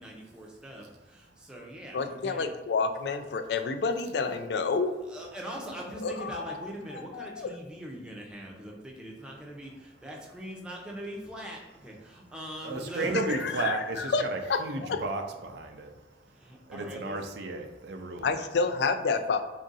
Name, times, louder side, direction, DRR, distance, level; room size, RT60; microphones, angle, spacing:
voice 1, 0.0-2.5 5.1-13.7 16.3-17.2, right 1 dB, 5° right, -2 dB, 0.6 m, -42 dB
voice 2, 1.9-4.9 6.0-6.6 6.9-7.5 13.3-14.2 14.5-14.6 14.9-15.0 18.2-19.4, left 4 dB, 70° left, 8 dB, 0.4 m, -29 dB
voice 3, 12.6-15.9 16.7-18.3, right 2 dB, 70° right, 4 dB, 0.5 m, -33 dB
3.6 x 2.5 x 4.0 m, 1.2 s
head